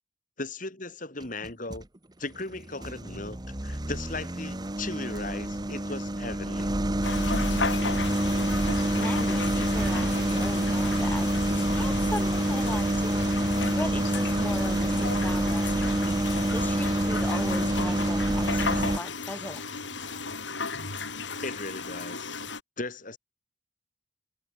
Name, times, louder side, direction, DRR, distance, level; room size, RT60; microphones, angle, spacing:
voice 1, 0.4-1.8 2.2-6.8 21.4-22.4 22.8-23.2, left 2 dB, 45° left, 4.4 m, -37 dB
sound 1, 1.2-1.8 2.4-19.0, right 1 dB, 20° right, 1.1 m, -27 dB
sound 2, 7.0-22.6, left 4 dB, 80° left, 5.4 m, -35 dB
voice 2, 8.5-11.3 11.5-13.3 13.8-19.6, left 1 dB, 10° left, 2.4 m, -38 dB
sound 3, 9.7-22.5, right 1 dB, 60° right, 6.9 m, -46 dB
head